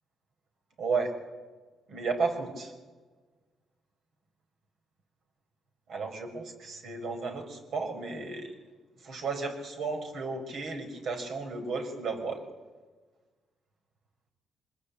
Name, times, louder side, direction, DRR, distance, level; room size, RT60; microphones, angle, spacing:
voice 1, 0.8-1.1 1.9-2.7 5.9-8.5 9.0-12.4, right 4 dB, 65° right, 4 dB, 5.8 m, -33 dB
24.5 x 21.0 x 8.7 m, 1.3 s
cardioid pair, 90°, 0 cm